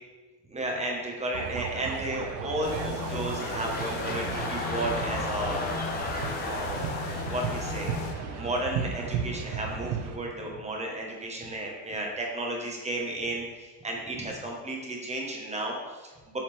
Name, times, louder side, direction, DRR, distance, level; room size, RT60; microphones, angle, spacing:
voice 1, 0.5-5.7 6.4-7.0 7.3-7.9 8.3-16.4, right 1 dB, 15° right, -1 dB, 1.3 m, -33 dB
sound 1, 1.3-10.2, right 7 dB, 75° right, 0.7 m, -35 dB
sound 2, 2.6-8.2, left 6 dB, 55° left, 0.8 m, -37 dB
sound 3, 2.6-9.2 9.7-9.8, left 2 dB, 25° left, 0.9 m, -36 dB
7.4 x 4.2 x 3.5 m, 1.3 s
supercardioid pair, 115°, 40 cm